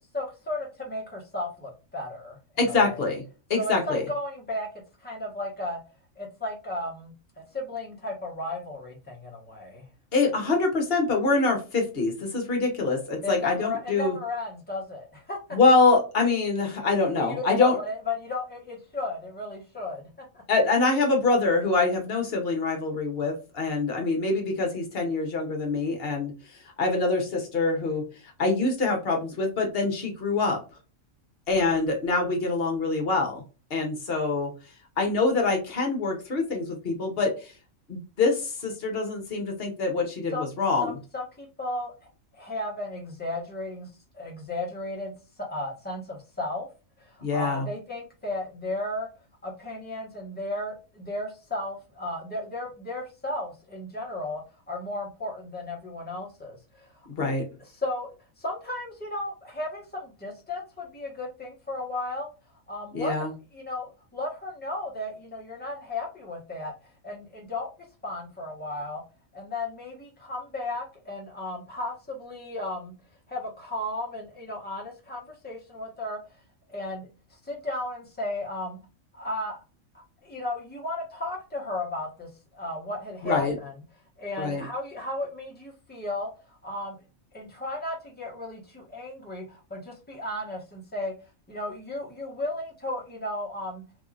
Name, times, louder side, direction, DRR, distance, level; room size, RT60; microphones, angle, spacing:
voice 1, 0.1-3.1 3.6-4.7 5.0-5.8 6.2-7.1 7.5-9.8 13.2-15.4 17.1-20.1 20.3-20.4 40.3-40.5 40.8-41.9 42.4-43.9 44.1-45.1 45.5-46.7 47.0-49.1 49.4-54.4 54.7-57.1 57.7-62.3 62.7-63.2 63.5-66.7 67.0-67.7 68.0-69.0 69.3-72.9 73.3-76.2 76.7-77.1 77.4-78.8 79.1-79.6 79.9-83.7 84.2-87.0 87.3-91.1 91.5-93.8, left 2 dB, 10° left, -2 dB, 0.9 m, -34 dB
voice 2, 2.6-3.2 3.5-4.0 10.1-14.2 15.5-17.8 20.5-26.3 26.8-28.0 28.4-30.6 31.5-33.4 33.7-34.5 35.0-37.5 37.9-40.9 47.2-47.6 57.2-57.4 62.9-63.3 83.2-83.5 84.4-84.6, left 3 dB, 50° left, 2 dB, 1.0 m, -25 dB
3.1 x 2.6 x 2.4 m, 0.32 s
omnidirectional pair, 1.4 m